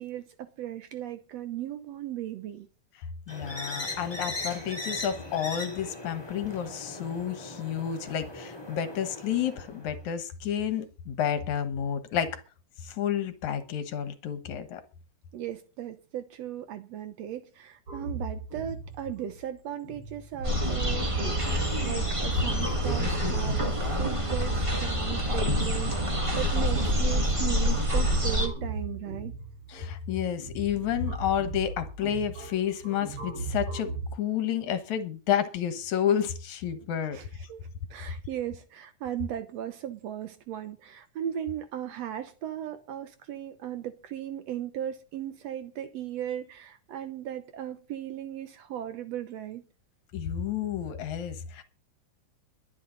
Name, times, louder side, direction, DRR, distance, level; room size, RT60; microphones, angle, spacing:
voice 1, 0.0-2.7 15.3-29.3 37.1-37.6 37.9-49.6, right 11 dB, 65° right, 1.7 m, -37 dB
voice 2, 3.3-12.4 12.8-14.8 29.7-37.2 50.1-51.6, left 9 dB, 65° left, 2.6 m, -30 dB
sound 1, 3.3-10.0, left 2 dB, 10° left, 2.7 m, -39 dB
sound 2, 17.9-34.1, right 3 dB, 40° right, 5.8 m, -38 dB
sound 3, 20.4-28.5, equal, 20° right, 0.8 m, -27 dB
22.5 x 8.6 x 4.0 m
omnidirectional pair, 3.8 m